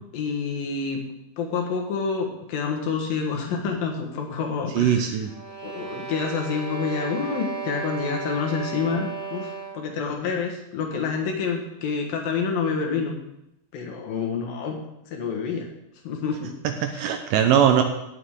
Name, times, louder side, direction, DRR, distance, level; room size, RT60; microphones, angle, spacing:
voice 1, 0.1-1.0 1.4-5.2 5.6-13.1 13.7-14.8 15.1-15.7 16.0-16.5 16.9-17.0, left 5 dB, 70° left, 2 dB, 3.1 m, -28 dB
voice 2, 4.7-5.3 16.6-17.8, right 9 dB, 75° right, 6 dB, 2.1 m, -20 dB
sound 1, 5.2-10.0, right 5 dB, 20° right, 2.7 m, -34 dB
17.0 x 7.1 x 3.6 m, 0.85 s
omnidirectional pair, 4.4 m